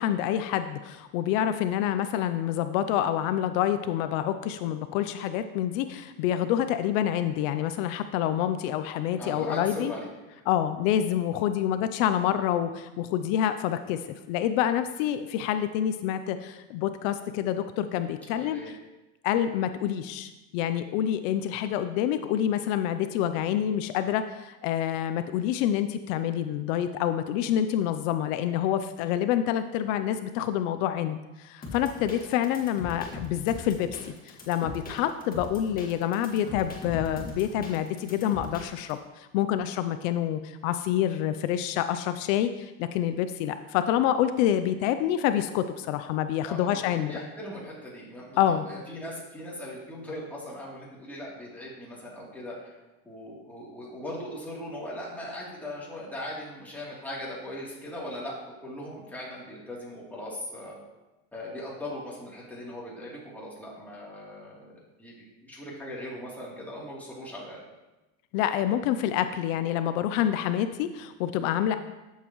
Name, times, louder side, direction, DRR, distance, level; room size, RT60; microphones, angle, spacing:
voice 1, 0.0-9.9 10.5-14.0 14.3-18.7 19.2-47.2 48.4-48.7 68.3-71.8, left 10 dB, 80° left, 10 dB, 0.6 m, -27 dB
voice 2, 9.2-10.4 18.3-18.7 46.5-48.4 48.6-52.8 53.0-60.8 61.3-65.1 65.4-67.6, left 1 dB, 5° left, -6 dB, 3.0 m, -39 dB
sound 1, 31.6-38.9, left 3 dB, 25° left, 1.8 m, -40 dB
12.0 x 7.5 x 3.1 m, 1.1 s
cardioid pair, 135°, 38 cm